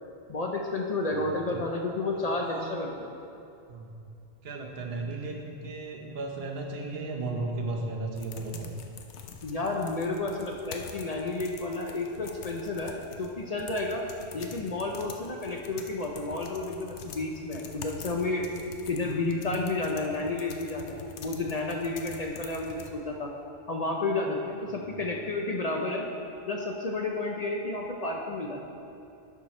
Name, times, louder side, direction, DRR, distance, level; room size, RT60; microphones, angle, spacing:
voice 1, 0.3-3.1 9.4-14.1 14.3-18.5 18.9-23.3 23.7-26.1 26.5-28.6, left 2 dB, 45° left, 0 dB, 0.6 m, -31 dB
voice 2, 1.1-1.6 2.4-2.8 3.7-4.0 4.4-8.7 14.4-14.5 19.1-19.2, right 2 dB, 65° right, 1 dB, 1.1 m, -35 dB
sound 1, 8.2-22.9, left 6 dB, 85° left, 0.9 m, -46 dB
10.5 x 4.7 x 4.2 m, 2.6 s
omnidirectional pair, 1.1 m